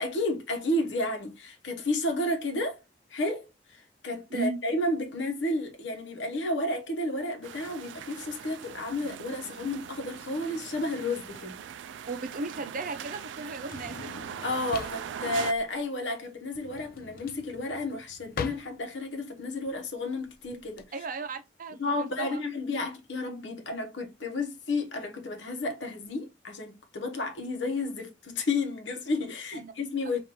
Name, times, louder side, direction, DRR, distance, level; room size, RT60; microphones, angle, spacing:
voice 1, 0.0-2.8 3.1-11.6 14.4-20.9 21.8-30.2, left 2 dB, 90° left, 1.0 m, -32 dB
sound 1, 7.4-15.5, right 8 dB, 80° right, 0.3 m, -41 dB
Drawer open or close, 11.2-20.8, left 6 dB, 55° left, 0.4 m, -43 dB
voice 2, 12.1-14.1 20.9-22.4 29.5-29.7, right 3 dB, 50° right, 0.7 m, -35 dB
5.3 x 2.6 x 2.9 m
head